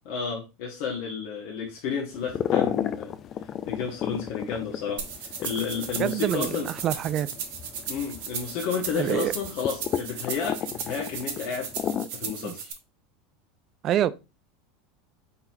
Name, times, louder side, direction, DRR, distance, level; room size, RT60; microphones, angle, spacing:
voice 1, 0.1-3.1 3.7-6.7 7.9-11.7 12.1-12.7, left 6 dB, 65° left, 1.1 m, -31 dB
sound 1, 2.1-12.1, left 9 dB, 40° left, 0.3 m, -33 dB
sound 2, 5.0-12.7, right 7 dB, 75° right, 1.1 m, -36 dB
voice 2, 6.0-7.3 9.0-9.3 12.2-12.5 13.8-14.1, right 11 dB, 40° right, 0.3 m, -26 dB
4.3 x 4.0 x 2.7 m
supercardioid pair, 115°, 0 cm